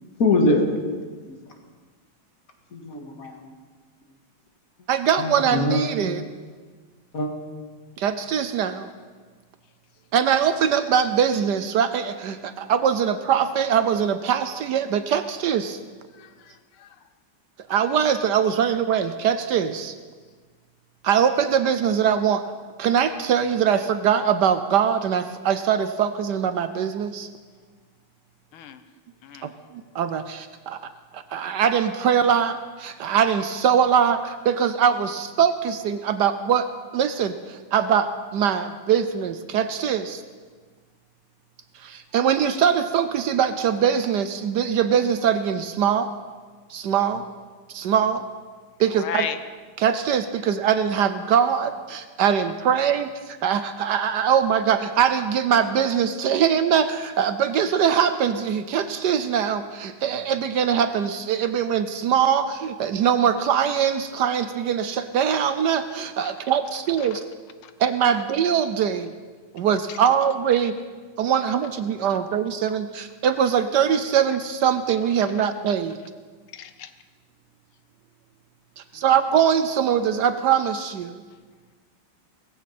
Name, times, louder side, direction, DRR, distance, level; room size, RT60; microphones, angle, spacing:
voice 1, 0.2-0.7 1.3-1.4 2.7-3.5 5.2-5.8 7.1-7.3, left 2 dB, 45° left, 3 dB, 2.2 m, -23 dB
voice 2, 4.9-6.2 8.0-8.9 10.1-15.8 17.7-19.9 21.0-22.4 22.8-27.3 29.4-30.8 31.1-40.2 41.8-46.1 46.7-47.2 47.7-48.2 48.8-49.2 49.8-67.2 67.8-69.1 69.5-70.7 71.2-76.0 78.9-81.2, right 8 dB, 70° right, 10 dB, 1.1 m, -22 dB
voice 3, 16.1-17.0 28.5-28.8 29.2-29.5 49.0-49.4 66.2-66.3 67.0-67.2 67.6-67.7 69.9-70.0 76.5-76.9 78.9-79.0, left 8 dB, 80° left, 11 dB, 1.7 m, -35 dB
18.5 x 15.5 x 4.3 m, 1.5 s
omnidirectional pair, 2.3 m